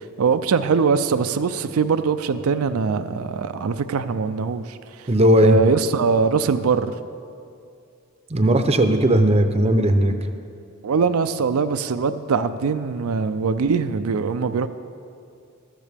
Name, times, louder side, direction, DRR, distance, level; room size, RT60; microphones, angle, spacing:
voice 1, 0.0-4.8 5.4-6.9 10.8-14.7, right 5 dB, 85° right, 10 dB, 0.4 m, -22 dB
voice 2, 5.1-5.6 8.3-10.1, right 1 dB, 30° right, 8 dB, 0.6 m, -17 dB
13.5 x 13.0 x 3.4 m, 2.4 s
head